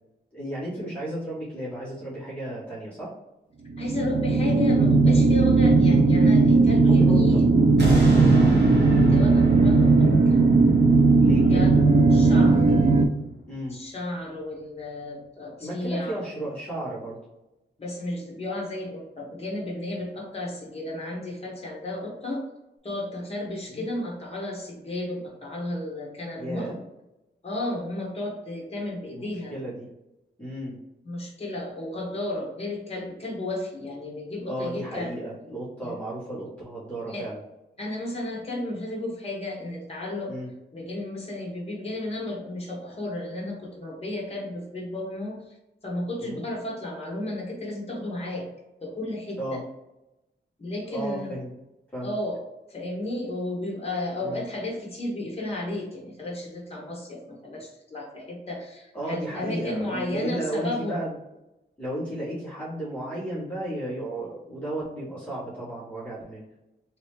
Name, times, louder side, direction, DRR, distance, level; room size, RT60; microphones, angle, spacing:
voice 1, 0.3-3.1 6.8-7.4 8.0-8.3 11.2-11.7 13.5-13.8 15.6-17.2 23.7-23.8 26.4-26.7 29.1-29.9 30.4-30.8 34.4-37.4 40.3-40.5 46.2-46.5 49.3-49.6 50.9-51.5 51.9-52.1 54.2-54.4 58.9-61.1 61.8-66.4, right 1 dB, 5° left, -10 dB, 1.5 m, -34 dB
sound 1, 3.7-13.1, right 3 dB, 45° right, 0.5 m, -18 dB
voice 2, 3.8-7.5 9.0-10.4 11.4-11.8 12.1-12.6 13.7-16.2 17.8-22.4 22.8-26.7 27.4-29.5 31.0-35.2 35.8-36.0 37.1-37.3 37.8-40.3 40.7-45.6 45.8-48.5 48.8-49.6 50.6-51.4 52.0-52.4 52.7-61.1, left 1 dB, 35° left, -1 dB, 1.1 m, -33 dB
sound 2, 7.8-12.9 13.4-13.5, right 3 dB, 70° right, 1.3 m, -28 dB
3.1 x 2.9 x 3.2 m, 0.93 s
wide cardioid pair, 145°, 19 cm